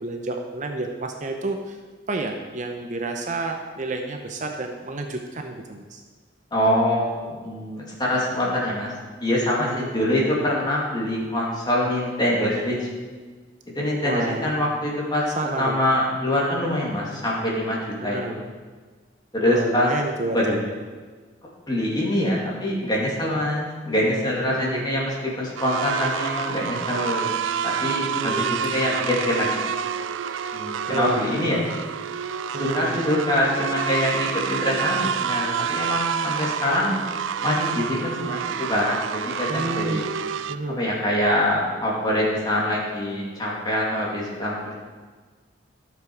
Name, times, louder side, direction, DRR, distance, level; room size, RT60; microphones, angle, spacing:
voice 1, 0.0-1.8 2.1-6.0 9.6-9.9 14.0-14.5 15.4-15.8 18.0-18.4 19.4-20.7 24.5-24.9 28.1-28.6 30.9-31.3 32.5-33.0 39.5-40.0 40.5-40.8, right 2 dB, 40° right, 4 dB, 0.7 m, -30 dB
voice 2, 6.5-8.9 9.2-12.9 13.7-15.2 15.6-17.8 18.0-18.4 19.3-19.9 20.3-20.6 21.7-27.3 27.6-29.5 30.5-31.6 32.6-36.9 37.4-40.0 40.7-44.8, left 1 dB, 20° left, -4 dB, 2.4 m, -24 dB
sound 1, 25.6-40.6, right 7 dB, 80° right, 0.4 m, -28 dB
13.0 x 7.1 x 4.7 m, 1.4 s
head